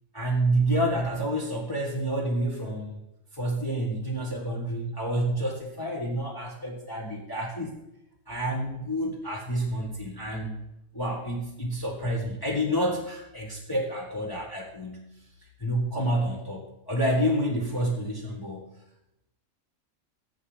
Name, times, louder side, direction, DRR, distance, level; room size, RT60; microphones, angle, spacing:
voice 1, 0.1-3.0 3.3-7.7 8.3-10.6 10.9-15.1 15.6-18.7, right 1 dB, 15° left, -3 dB, 1.6 m, -29 dB
8.3 x 7.3 x 8.8 m, 0.87 s
omnidirectional pair, 1.4 m